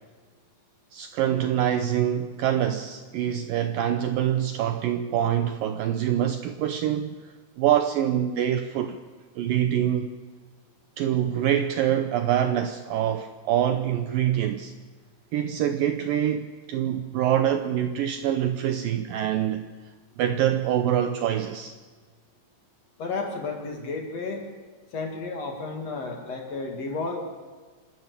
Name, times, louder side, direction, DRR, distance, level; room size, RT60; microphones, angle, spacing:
voice 1, 0.9-7.2 7.6-9.0 9.4-10.1 11.0-14.7 15.3-19.7 20.2-21.7, right 10 dB, 75° right, 8 dB, 2.1 m, -25 dB
voice 2, 23.0-24.4 24.9-27.2, left 3 dB, 45° left, 3 dB, 2.9 m, -32 dB
27.0 x 13.0 x 8.3 m, 1.4 s
omnidirectional pair, 4.8 m